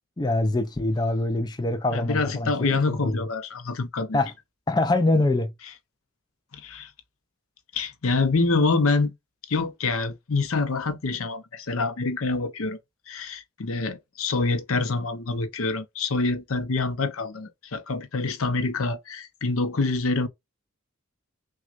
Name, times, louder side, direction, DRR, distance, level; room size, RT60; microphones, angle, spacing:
voice 1, 0.2-3.2 4.1-4.3 4.7-5.5, left 2 dB, 20° left, 0.4 m, -24 dB
voice 2, 1.9-4.2 6.5-6.9 7.7-9.1 9.5-12.8 13.1-20.3, left 3 dB, 75° left, 0.7 m, -26 dB
6.0 x 2.3 x 2.5 m
head